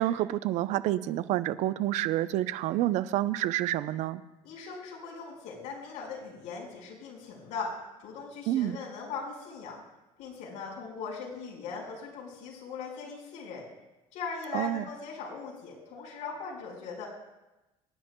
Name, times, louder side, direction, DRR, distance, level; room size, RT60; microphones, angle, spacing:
voice 1, 0.0-4.2 8.5-8.8 14.5-14.8, right 14 dB, 65° right, 14 dB, 0.6 m, -28 dB
voice 2, 4.4-9.8 10.2-13.6 14.1-17.1, left 5 dB, 70° left, -2 dB, 4.7 m, -39 dB
25.5 x 10.5 x 2.3 m, 1.0 s
cardioid pair, 110°, 13 cm